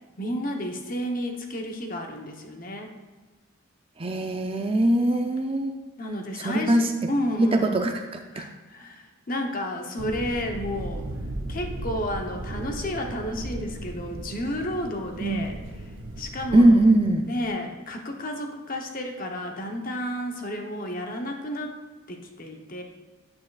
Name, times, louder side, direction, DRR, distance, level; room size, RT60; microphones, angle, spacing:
voice 1, 0.2-2.9 6.0-7.8 8.3-11.1 11.5-15.6 16.2-16.8 17.3-21.8 22.1-22.8, left 1 dB, 40° left, 3 dB, 0.9 m, -32 dB
voice 2, 4.0-5.7 6.4-6.9 7.4-8.4 15.2-15.4 16.5-17.3, right 1 dB, 25° right, 4 dB, 0.5 m, -21 dB
sound 1, 10.0-17.5, right 1 dB, 60° right, 0.7 m, -36 dB
9.6 x 8.7 x 2.4 m, 1.3 s
head